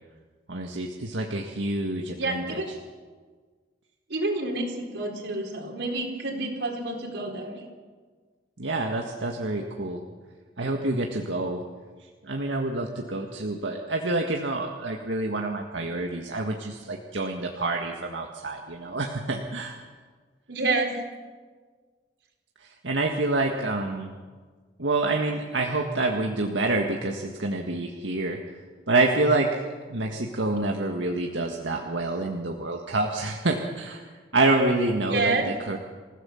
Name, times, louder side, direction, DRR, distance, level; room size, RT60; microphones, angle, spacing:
voice 1, 0.5-2.6 8.6-10.0 10.6-11.6 12.0-19.8 22.6-24.1 24.8-35.8, right 2 dB, 90° right, 2 dB, 1.7 m, -27 dB
voice 2, 2.2-2.7 4.1-7.6 20.5-20.9 35.1-35.5, right 2 dB, 70° right, 2 dB, 4.2 m, -28 dB
27.5 x 16.0 x 7.2 m, 1.5 s
head